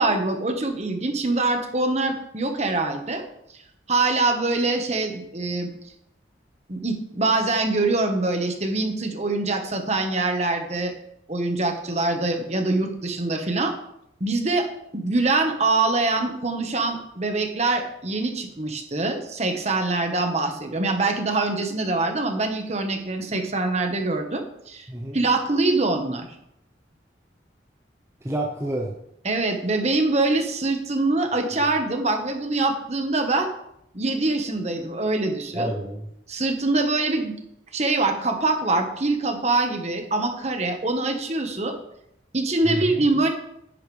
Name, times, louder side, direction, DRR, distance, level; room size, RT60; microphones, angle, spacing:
voice 1, 0.0-3.2 3.9-5.7 6.7-10.9 11.3-13.7 14.2-14.7 14.9-24.9 25.1-26.3 29.2-33.5 33.9-35.7 36.3-37.3 37.7-41.8 42.3-43.3, right 2 dB, 35° right, 5 dB, 1.4 m, -24 dB
voice 2, 24.9-25.2 28.2-29.0 35.5-36.1 42.6-43.1, right 1 dB, 15° right, -2 dB, 0.9 m, -29 dB
10.5 x 10.5 x 3.4 m, 0.78 s
head